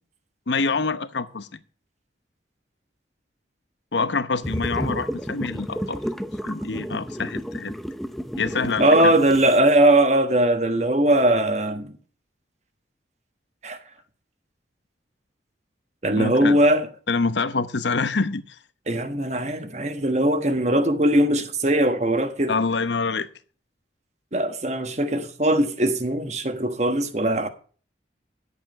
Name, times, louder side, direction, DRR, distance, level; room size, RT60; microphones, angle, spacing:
voice 1, 0.5-1.5 3.9-6.0 6.4-7.7 8.4-9.1 16.2-16.6 17.1-18.6 22.5-23.3, left 4 dB, 80° left, 0.9 m, -26 dB
sound 1, 4.4-9.6, equal, ahead, 0.7 m, -31 dB
voice 2, 8.8-11.9 13.6-13.8 16.0-16.9 18.9-22.5 24.3-27.5, right 1 dB, 40° right, 1.3 m, -20 dB
11.0 x 8.4 x 5.3 m
head